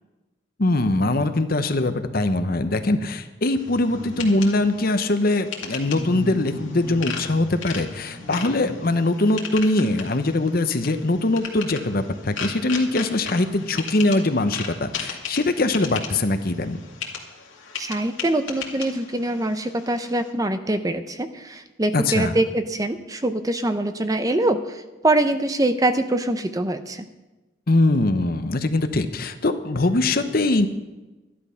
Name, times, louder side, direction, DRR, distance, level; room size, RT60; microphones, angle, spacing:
voice 1, 0.6-16.8 21.9-22.4 27.7-30.7, left 2 dB, 45° left, 9 dB, 0.8 m, -22 dB
sound 1, 3.6-20.3, left 6 dB, 70° left, 2.3 m, -37 dB
sound 2, 3.6-4.9 5.8-9.0 9.5-9.6, left 1 dB, 40° right, 5.2 m, -38 dB
voice 2, 17.8-27.0, right 1 dB, 15° right, 9 dB, 0.6 m, -24 dB
13.0 x 11.5 x 5.7 m, 1.1 s
head